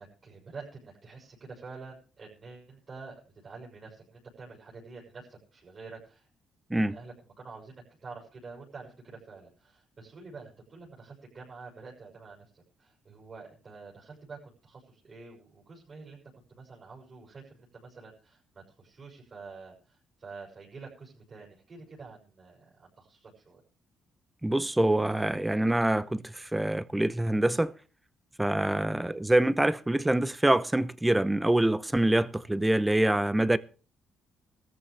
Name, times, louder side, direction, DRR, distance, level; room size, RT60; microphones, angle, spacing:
voice 1, 0.0-6.3 6.8-16.2 16.5-23.6 28.9-29.2, right 4 dB, 40° right, 6.9 m, -48 dB
voice 2, 24.4-27.7 28.4-33.6, right 1 dB, 10° right, 0.8 m, -25 dB
18.5 x 14.0 x 3.4 m
cardioid pair, 90°, 0 cm